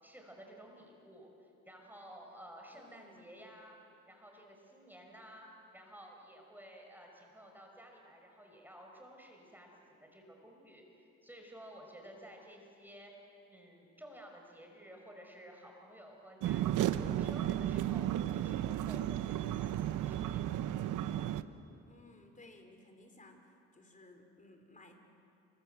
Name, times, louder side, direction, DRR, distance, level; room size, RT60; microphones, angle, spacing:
voice 1, 0.0-3.8 4.1-5.5 5.7-13.1 13.5-18.1 18.3-20.5, equal, 5° right, 1 dB, 5.4 m, -54 dB
voice 2, 2.7-3.3 21.8-24.9, left 2 dB, 25° left, 4 dB, 4.8 m, -58 dB
sound 1, 16.4-21.4, right 12 dB, 85° right, 1.0 m, -33 dB
29.5 x 25.5 x 7.9 m, 2.6 s
cardioid pair, 90°, 30 cm